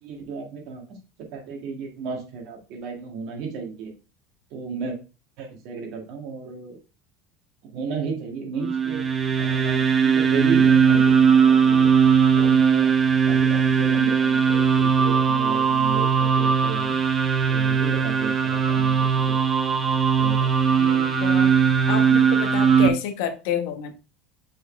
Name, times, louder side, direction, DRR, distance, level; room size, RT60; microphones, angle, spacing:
voice 1, 0.0-1.0 1.3-3.9 4.5-5.0 5.4-6.8 7.7-9.0 9.4-11.9 12.3-12.9 13.2-16.9 17.5-19.4 20.2-20.8, right 5 dB, 45° right, 1.8 m, -33 dB
sound 1, 8.6-22.9, right 6 dB, 15° right, 0.5 m, -19 dB
voice 2, 20.8-21.5 21.9-24.0, left 9 dB, 60° left, 1.0 m, -29 dB
6.6 x 4.4 x 3.3 m
cardioid pair, 180°, 0 cm